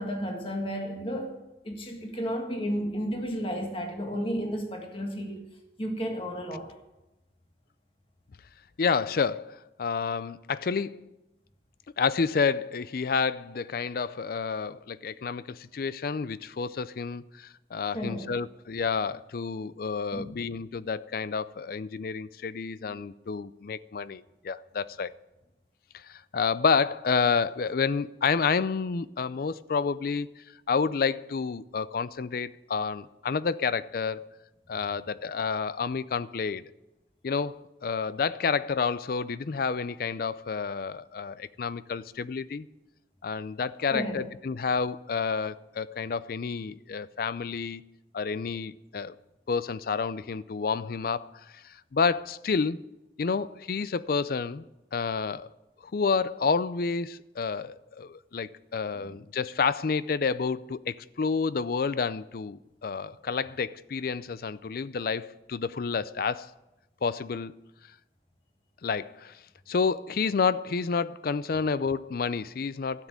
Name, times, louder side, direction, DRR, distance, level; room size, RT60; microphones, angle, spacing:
voice 1, 0.0-1.4 1.6-5.5 5.8-6.7 17.9-18.3 20.1-20.4 43.9-44.2 59.0-59.1, equal, 30° left, 1.7 m, -32 dB
voice 2, 8.8-11.1 12.0-25.1 25.9-30.3 30.7-34.3 34.7-36.6 37.2-42.7 43.2-47.8 48.1-49.1 49.5-52.8 53.2-54.6 54.9-55.5 55.9-66.5 67.0-67.5 68.8-69.4 69.7-73.1, left 5 dB, 55° left, 0.4 m, -29 dB
12.5 x 7.3 x 9.5 m
head